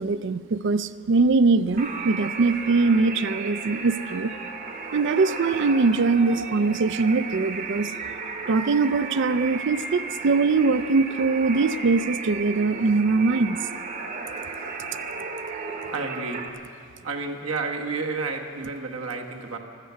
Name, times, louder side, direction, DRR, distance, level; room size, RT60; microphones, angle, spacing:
voice 1, 0.0-4.3 4.9-7.9 8.5-13.6, right 3 dB, 55° right, 15 dB, 0.4 m, -22 dB
sound 1, 1.8-16.5, right 4 dB, 40° right, 1.1 m, -34 dB
voice 2, 15.9-16.4 17.0-19.6, right 4 dB, 80° right, 2 dB, 1.4 m, -30 dB
14.0 x 13.0 x 8.0 m, 2.3 s
head